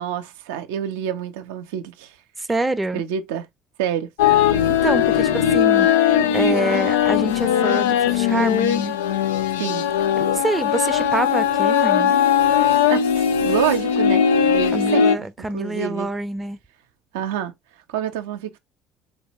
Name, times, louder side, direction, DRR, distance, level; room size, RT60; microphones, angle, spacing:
voice 1, 0.0-2.1 2.9-3.5 3.8-4.1 9.6-9.9 12.9-15.1 15.5-16.1 17.1-17.5 17.9-18.6, right 9 dB, 80° right, 0.5 m, -27 dB
voice 2, 2.4-3.0 4.7-5.9 6.3-9.0 10.2-12.2 14.7-16.6, right 2 dB, 15° right, 0.5 m, -26 dB
sound 1, 4.2-15.1, left 9 dB, 85° left, 0.3 m, -19 dB
3.3 x 3.2 x 2.9 m
hypercardioid pair, 65°, 0 cm